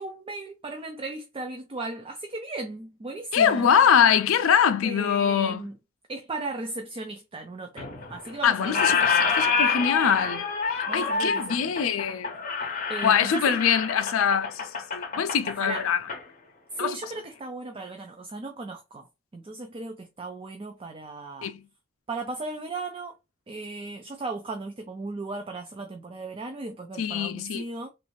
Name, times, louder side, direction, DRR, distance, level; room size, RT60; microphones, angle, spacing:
voice 1, 0.0-3.7 4.8-5.8 6.1-9.7 10.9-11.7 12.9-13.6 15.4-16.0 16.7-19.1 19.3-21.5 22.1-23.1 23.5-27.9, right 3 dB, 25° right, 0.4 m, -36 dB
voice 2, 3.3-5.6 8.4-10.4 10.8-12.3 13.0-16.0 16.8-17.0 21.4-21.6 27.0-27.6, left 8 dB, 70° left, 0.4 m, -23 dB
Squeak, 7.8-8.3 8.6-16.2, left 5 dB, 40° left, 0.8 m, -27 dB
3.2 x 2.6 x 3.1 m
head